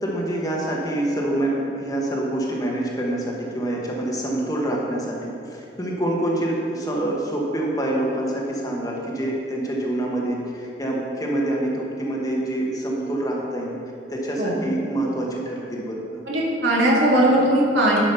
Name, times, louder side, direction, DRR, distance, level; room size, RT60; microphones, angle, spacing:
voice 1, 0.0-13.7 14.1-16.2, right 1 dB, 20° left, -2 dB, 1.3 m, -26 dB
voice 2, 16.3-18.0, right 1 dB, 75° right, -5 dB, 2.4 m, -19 dB
10.5 x 6.3 x 5.6 m, 2.6 s
head